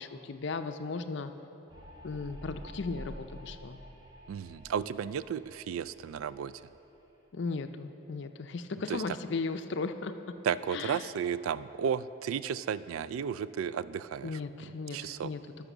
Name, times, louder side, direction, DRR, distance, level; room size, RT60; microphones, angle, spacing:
voice 1, 0.0-1.3 2.0-3.8 7.3-10.1 10.7-11.1 14.2-15.4, left 4 dB, 55° left, 9 dB, 0.5 m, -36 dB
sound 1, 1.7-7.2, equal, 20° right, 0.9 m, -49 dB
voice 2, 4.3-6.5 8.9-9.2 10.4-15.3, right 7 dB, 80° right, 17 dB, 0.3 m, -34 dB
12.0 x 6.6 x 6.1 m, 2.9 s
head